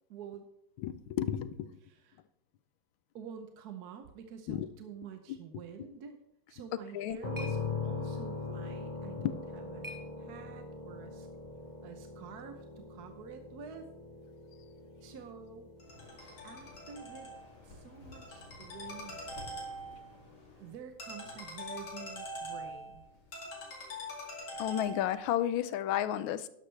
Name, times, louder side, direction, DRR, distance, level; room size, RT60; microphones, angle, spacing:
voice 1, 0.1-0.5 1.8-2.2 3.1-6.2 6.5-11.3 11.8-13.9 15.0-15.7 16.4-17.3 17.6-19.3 20.6-23.1, right 7 dB, 60° right, 7 dB, 1.2 m, -48 dB
voice 2, 0.8-1.8 4.5-4.7 6.9-7.2 24.6-26.5, left 11 dB, 85° left, 14 dB, 1.4 m, -32 dB
sound 1, 6.6-10.8, left 1 dB, 35° right, 0.3 m, -52 dB
sound 2, 7.2-21.0, left 4 dB, 30° left, 1.0 m, -42 dB
Ringtone, 15.8-25.4, equal, 60° left, 3.0 m, -44 dB
12.0 x 11.0 x 3.3 m, 0.78 s
omnidirectional pair, 2.1 m